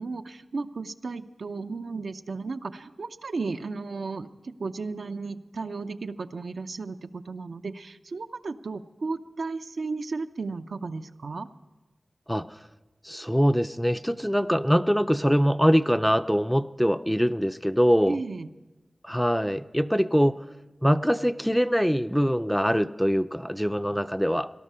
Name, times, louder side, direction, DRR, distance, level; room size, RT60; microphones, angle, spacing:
voice 1, 0.0-11.5 18.1-18.5, right 4 dB, 80° right, 7 dB, 0.6 m, -34 dB
voice 2, 13.0-18.2 19.0-20.4 20.8-24.5, equal, ahead, 12 dB, 0.4 m, -23 dB
18.0 x 12.5 x 5.6 m, 1.1 s
wide cardioid pair, 75°, 0 cm